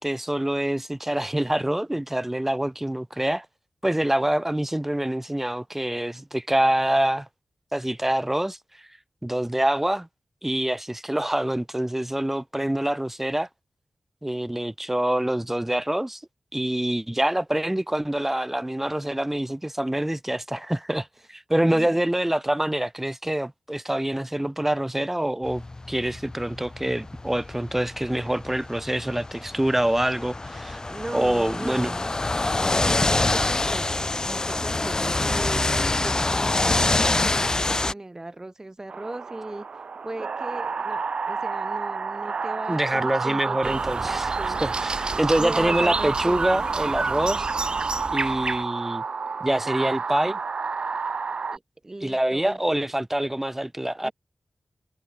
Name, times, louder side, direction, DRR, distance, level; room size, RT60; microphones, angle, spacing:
voice 1, 0.0-3.5 3.8-7.3 7.7-8.9 9.2-10.1 10.4-13.5 14.2-16.2 16.5-30.8 31.1-31.9 42.7-47.5 48.1-49.0 49.4-50.4 52.0-54.1, right 1 dB, 15° right, 2.4 m, -26 dB
sound 1, 25.4-37.9, left 2 dB, 35° left, 0.9 m, -26 dB
voice 2, 30.8-32.1 32.8-39.7 40.0-44.6 45.1-46.6 51.5-52.6 54.0-54.1, right 2 dB, 30° right, 5.4 m, -37 dB
sound 2, 38.9-51.6, right 5 dB, 65° right, 0.4 m, -30 dB
sound 3, 43.6-48.6, right 3 dB, 50° right, 1.6 m, -30 dB
cardioid pair, 55°, 2 cm